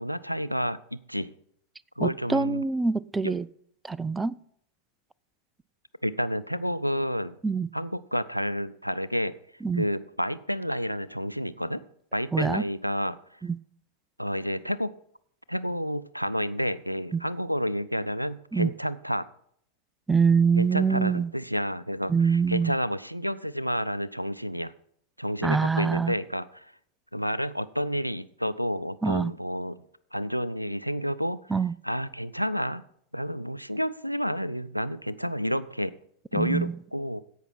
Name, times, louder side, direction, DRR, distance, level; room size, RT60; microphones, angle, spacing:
voice 1, 0.0-1.3 2.0-2.6 3.2-3.3 6.0-7.4 7.7-9.3 9.7-11.8 12.1-13.2 14.2-14.9 15.5-19.3 20.6-24.7 25.2-26.7 27.1-29.8 30.1-31.4 31.8-32.8 33.1-35.9 36.3-37.2, equal, 90° right, 0.4 m, -30 dB
voice 2, 2.0-3.5 3.9-4.4 7.4-7.7 9.6-9.8 12.3-12.6 13.4-13.6 18.5-18.7 20.1-21.3 22.1-22.7 25.4-26.2 29.0-29.3 31.5-31.7 36.4-36.8, right 5 dB, 10° right, 0.4 m, -24 dB
16.0 x 5.6 x 4.4 m
figure-of-eight pair, 90°, 0 cm